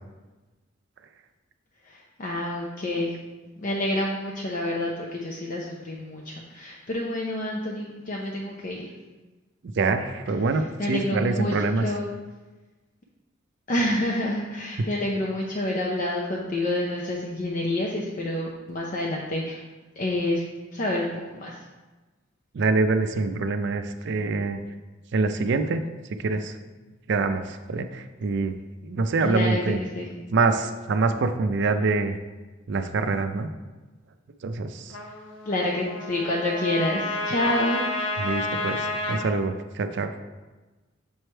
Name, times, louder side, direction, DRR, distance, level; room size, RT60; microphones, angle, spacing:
voice 1, 1.8-3.2 3.6-8.9 10.5-12.1 13.7-19.6 20.0-20.4 20.7-21.6 29.2-30.2 35.5-37.8, left 1 dB, 45° left, -2 dB, 0.6 m, -28 dB
voice 2, 9.8-11.9 14.8-14.9 22.5-24.6 25.1-25.8 26.2-26.5 27.1-28.5 28.8-29.8 30.3-32.2 32.7-33.5 34.4-34.9 38.2-40.1, right 3 dB, 60° right, 9 dB, 0.4 m, -25 dB
Trumpet, 34.9-39.3, left 2 dB, 80° left, 1.0 m, -30 dB
7.0 x 3.2 x 4.4 m, 1.2 s
head